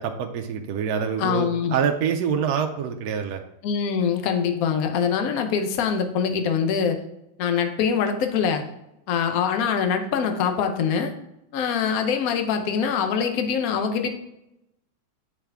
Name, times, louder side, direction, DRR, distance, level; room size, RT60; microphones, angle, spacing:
voice 1, 0.0-3.4, right 7 dB, 70° right, 4 dB, 0.9 m, -26 dB
voice 2, 1.2-1.7 3.6-7.0 7.4-8.6 9.1-11.1 11.5-14.1, left 7 dB, 60° left, 6 dB, 1.1 m, -24 dB
7.4 x 4.9 x 3.5 m, 0.84 s
omnidirectional pair, 2.0 m